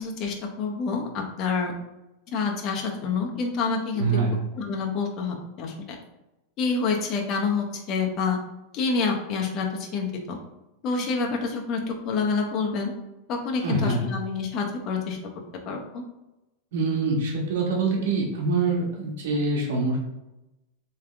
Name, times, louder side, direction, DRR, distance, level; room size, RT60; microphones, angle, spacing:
voice 1, 0.0-1.7 2.3-4.1 4.6-5.7 6.6-8.4 8.7-10.4 10.8-12.9 13.3-15.2 15.7-16.0, left 4 dB, 35° left, 1 dB, 0.8 m, -27 dB
voice 2, 4.0-4.3 13.6-14.1 16.7-20.0, right 3 dB, 75° right, 0 dB, 1.3 m, -25 dB
3.6 x 3.4 x 3.3 m, 0.94 s
supercardioid pair, 150°, 0 cm